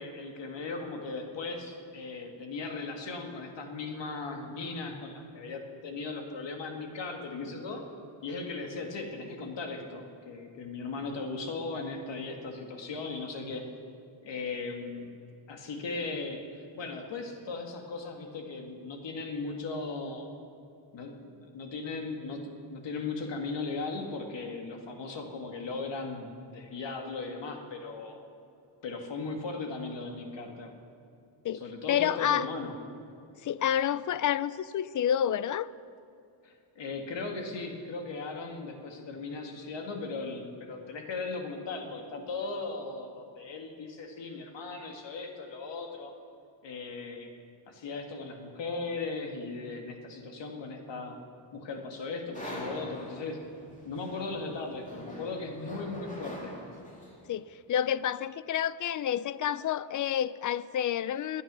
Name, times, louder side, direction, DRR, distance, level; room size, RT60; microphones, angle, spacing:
voice 1, 0.0-7.8 8.2-13.6 14.2-15.1 15.5-20.4 20.9-28.2 28.8-30.7 31.5-32.7 36.4-46.1 46.6-47.3 47.7-51.2 51.5-53.4 53.8-56.5, left 3 dB, 60° left, 3 dB, 2.1 m, -37 dB
voice 2, 31.9-32.5 33.4-35.7 57.3-61.4, left 10 dB, 40° left, 17 dB, 0.5 m, -29 dB
sound 1, 52.3-57.3, equal, 15° left, 3.0 m, -44 dB
19.5 x 9.6 x 6.3 m, 2.6 s
cardioid pair, 110°, 48 cm